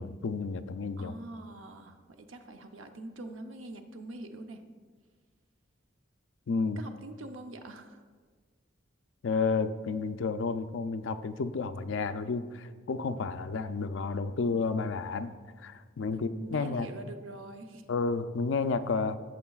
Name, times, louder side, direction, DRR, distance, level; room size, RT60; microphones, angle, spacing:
voice 1, 0.0-1.1 6.5-6.8 9.2-15.3 15.6-16.9 17.9-19.2, left 4 dB, 70° left, 10 dB, 0.4 m, -31 dB
voice 2, 1.0-4.6 6.8-8.0 16.1-17.8, right 2 dB, 85° right, 6 dB, 0.7 m, -44 dB
14.0 x 6.8 x 2.4 m, 1.5 s
head